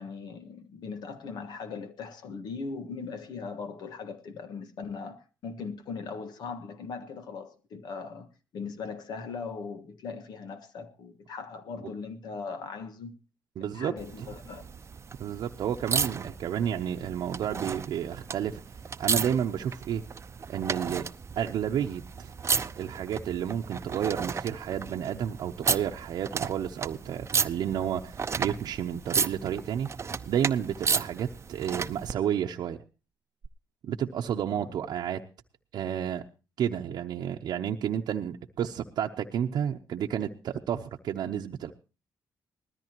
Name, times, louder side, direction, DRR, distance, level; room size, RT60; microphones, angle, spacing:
voice 1, 0.0-8.3 8.5-13.2 13.6-14.6 34.5-34.7, left 5 dB, 80° left, 1.5 m, -39 dB
voice 2, 13.6-14.3 15.2-18.6 19.0-20.0 20.5-21.1 21.4-22.3 22.8-29.9 30.3-32.8 33.8-35.2 35.7-36.2 36.6-41.7, right 9 dB, 75° right, 0.8 m, -31 dB
sound 1, 14.0-32.1 33.4-33.5, right 5 dB, 40° right, 0.6 m, -34 dB
19.5 x 13.5 x 3.0 m
cardioid pair, 75°, 7 cm